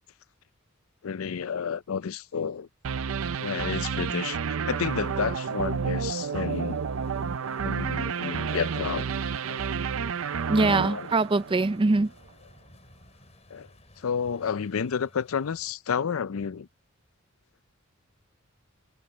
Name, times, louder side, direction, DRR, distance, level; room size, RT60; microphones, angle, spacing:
voice 1, 1.0-2.7 3.4-4.4 4.7-6.8 7.6-9.1 9.5-9.6 10.5-11.1 13.5-13.7 14.0-16.7, left 6 dB, 90° left, 0.5 m, -31 dB
sound 1, 2.8-11.9, right 6 dB, 75° right, 0.5 m, -30 dB
Truck, 4.7-15.7, left 2 dB, 30° left, 5.7 m, -56 dB
voice 2, 10.5-12.1, right 3 dB, 25° right, 0.4 m, -23 dB
head